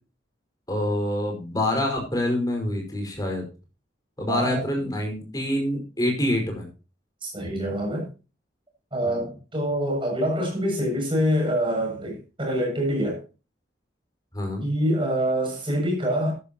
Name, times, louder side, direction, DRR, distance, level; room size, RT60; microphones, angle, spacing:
voice 1, 0.7-3.4 4.2-6.7 9.0-9.1 14.3-14.6, left 1 dB, 20° left, 5.2 m, -26 dB
voice 2, 4.2-4.6 7.2-8.1 8.9-13.2 14.6-16.3, equal, 30° right, 7.3 m, -25 dB
13.5 x 12.5 x 3.0 m
head